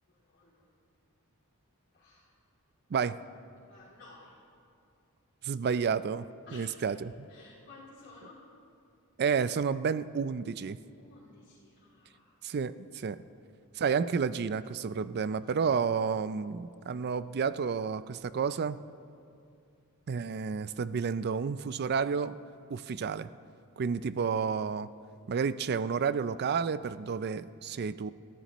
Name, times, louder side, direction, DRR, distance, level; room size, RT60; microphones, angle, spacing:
voice 1, 0.1-0.7 1.9-2.3 3.7-4.4 6.5-6.8 7.3-8.5 10.9-12.3 20.2-20.4, left 2 dB, 55° left, -9 dB, 3.0 m, -54 dB
voice 2, 5.4-6.3 6.5-7.3 9.2-10.8 12.4-13.2 13.8-18.8 20.1-22.3 22.7-23.3 23.8-24.9 25.3-28.1, right 6 dB, 45° right, 14 dB, 0.4 m, -30 dB
29.0 x 14.0 x 3.1 m, 2.4 s
head